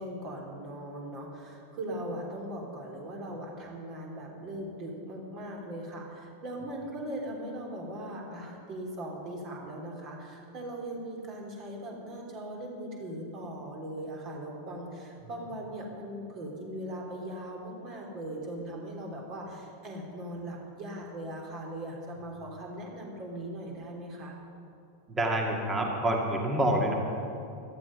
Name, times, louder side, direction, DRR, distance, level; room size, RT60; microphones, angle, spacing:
voice 1, 0.0-24.4, right 1 dB, 35° right, 0 dB, 3.5 m, -39 dB
voice 2, 25.1-26.9, right 1 dB, 15° right, 1 dB, 2.1 m, -27 dB
17.0 x 13.0 x 5.4 m, 2.7 s
figure-of-eight pair, 90°, 0 cm